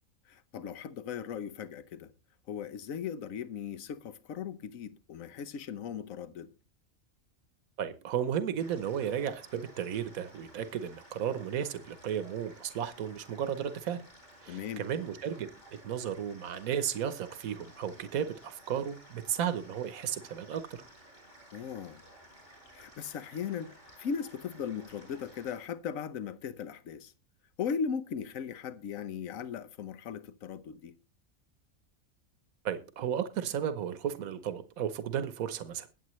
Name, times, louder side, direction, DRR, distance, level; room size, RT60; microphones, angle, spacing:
voice 1, 0.3-2.1 2.5-6.5 14.5-14.8 21.5-22.0 22.7-27.1 27.6-30.9, left 7 dB, 75° left, 1.3 m, -38 dB
voice 2, 7.8-14.0 14.4-15.5 15.8-20.8 32.6-35.9, right 9 dB, 80° right, 1.4 m, -34 dB
sound 1, 8.6-25.6, right 1 dB, 45° left, 6.8 m, -55 dB
21.5 x 8.2 x 3.1 m
omnidirectional pair, 1.5 m